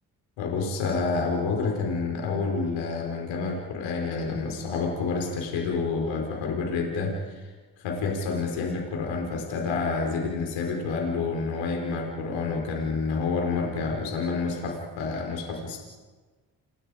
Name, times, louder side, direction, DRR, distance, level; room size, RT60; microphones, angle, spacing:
voice 1, 0.4-7.5 7.8-15.8, left 4 dB, 80° left, 1 dB, 4.9 m, -28 dB
29.5 x 29.5 x 5.1 m, 1.3 s
hypercardioid pair, 45°, 45 cm